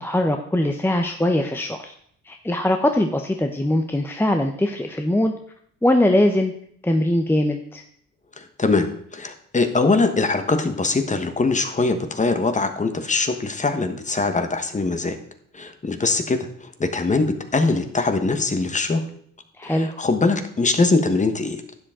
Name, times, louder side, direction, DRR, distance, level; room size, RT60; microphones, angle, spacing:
voice 1, 0.0-1.9 2.2-5.3 5.8-6.5 6.8-7.8 19.6-20.0, left 1 dB, 5° left, 4 dB, 0.8 m, -21 dB
voice 2, 8.4-15.2 15.5-19.0 19.6-21.6, left 3 dB, 25° left, 7 dB, 1.3 m, -22 dB
11.5 x 7.8 x 3.7 m, 0.65 s
cardioid pair, 90°, 30 cm